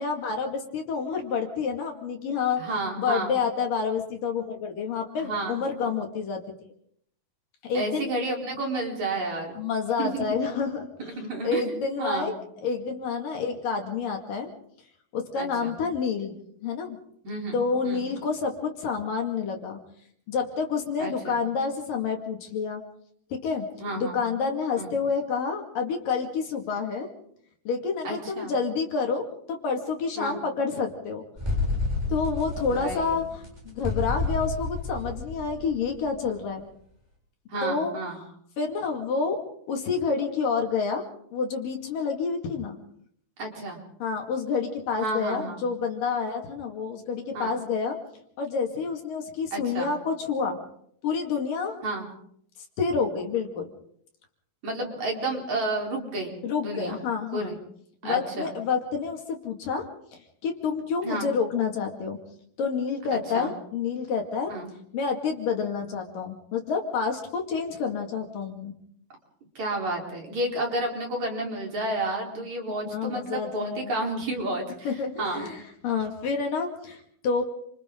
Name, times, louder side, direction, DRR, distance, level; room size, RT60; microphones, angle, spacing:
voice 1, 0.0-2.6 3.0-6.4 7.6-8.1 9.6-11.1 11.4-12.3 12.6-14.5 15.1-16.3 16.6-17.0 17.5-19.8 20.3-22.8 23.3-23.7 24.0-27.1 27.7-31.2 32.1-36.6 37.6-37.9 38.6-39.4 39.7-42.8 44.0-48.0 48.4-50.6 51.0-51.8 52.8-53.7 56.4-57.5 58.0-59.9 60.1-62.2 62.6-64.5 64.9-68.7 72.9-73.9 74.9-77.4, left 5 dB, 60° left, 3 dB, 3.8 m, -28 dB
voice 2, 2.6-3.4 5.2-5.9 7.7-9.5 10.0-10.3 11.0-11.6 12.0-12.3 15.4-15.7 17.2-17.6 17.8-18.0 21.0-21.4 23.8-24.2 24.8-24.9 28.0-28.5 30.2-30.4 32.6-33.1 37.5-38.2 43.4-43.8 45.0-45.6 47.3-47.5 49.5-49.9 51.8-52.1 54.6-57.0 57.3-57.6 58.0-58.5 61.0-61.3 63.1-63.5 64.5-64.7 69.6-74.9 75.2-75.5, right 2 dB, 45° right, 0 dB, 5.4 m, -31 dB
sound 1, 31.4-36.1, left 2 dB, 5° right, 7.2 m, -30 dB
29.5 x 26.5 x 3.9 m, 0.69 s
omnidirectional pair, 4.5 m